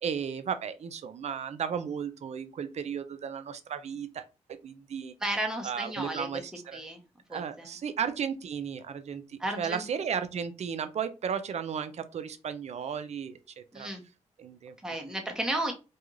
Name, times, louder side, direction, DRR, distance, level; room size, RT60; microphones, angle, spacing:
voice 1, 0.0-4.2 4.6-5.1 5.6-6.8 7.3-13.9 14.4-14.7, right 7 dB, 60° right, 10 dB, 0.4 m, -34 dB
voice 2, 5.2-6.3 6.7-7.0 7.3-7.7 9.4-9.8 13.7-14.0 14.8-15.7, right 1 dB, 5° right, 2 dB, 0.7 m, -33 dB
2.4 x 2.3 x 3.0 m, 0.30 s
cardioid pair, 85°, 13 cm